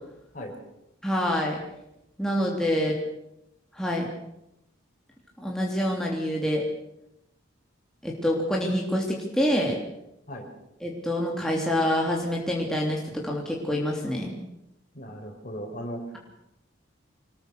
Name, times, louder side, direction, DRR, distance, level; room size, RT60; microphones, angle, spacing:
voice 1, 1.0-1.6 2.2-2.9 3.7-4.1 5.4-6.7 8.0-9.8 10.8-14.3, equal, 5° left, -2 dB, 3.3 m, -26 dB
voice 2, 14.9-16.0, equal, 40° left, 2 dB, 5.6 m, -37 dB
25.5 x 21.0 x 6.8 m, 0.86 s
head